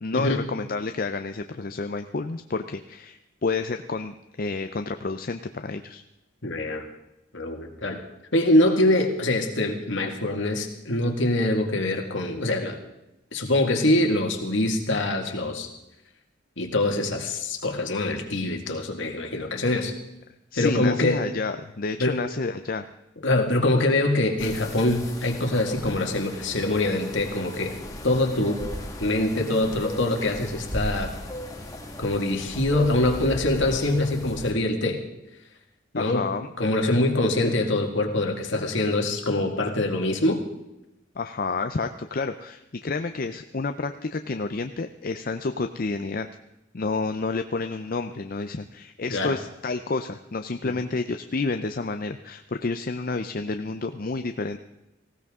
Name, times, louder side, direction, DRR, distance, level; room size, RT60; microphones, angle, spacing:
voice 1, 0.0-6.0 20.5-22.9 36.0-36.5 41.2-46.3 46.7-54.6, left 3 dB, 45° left, 8 dB, 0.5 m, -30 dB
voice 2, 6.4-6.9 7.3-8.0 8.3-12.8 13.3-15.7 16.6-19.9 20.6-21.2 22.0-22.2 23.2-27.7 28.0-28.6 29.0-31.1 32.0-35.0 35.9-36.3 36.6-40.4 49.1-49.4 50.6-50.7, left 1 dB, 65° left, 4 dB, 1.9 m, -24 dB
sound 1, 24.4-34.5, equal, 15° left, 1.6 m, -36 dB
19.0 x 16.0 x 3.7 m, 0.94 s
head